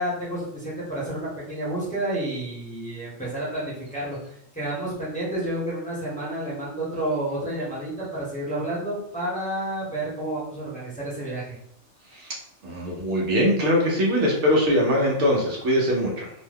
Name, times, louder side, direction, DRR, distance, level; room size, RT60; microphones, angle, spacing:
voice 1, 0.0-11.6, right 1 dB, 5° left, -8 dB, 0.8 m, -30 dB
voice 2, 12.6-16.3, equal, 70° right, -2 dB, 1.0 m, -22 dB
2.7 x 2.1 x 3.3 m, 0.72 s
omnidirectional pair, 1.3 m